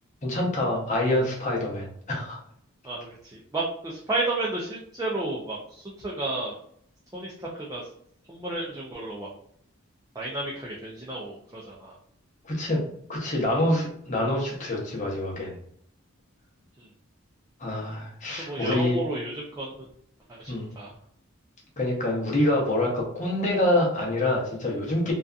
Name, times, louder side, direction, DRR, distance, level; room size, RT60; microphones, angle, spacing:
voice 1, 0.2-2.4 12.4-12.8 13.1-15.6 17.6-19.0 20.5-20.7 21.8-25.1, left 1 dB, 35° left, -2 dB, 0.7 m, -26 dB
voice 2, 2.8-6.6 7.1-7.9 8.3-9.3 10.1-12.0 16.8-16.9 18.4-19.7 20.3-20.9, right 2 dB, 15° right, -4 dB, 0.4 m, -32 dB
2.6 x 2.3 x 2.3 m, 0.66 s
head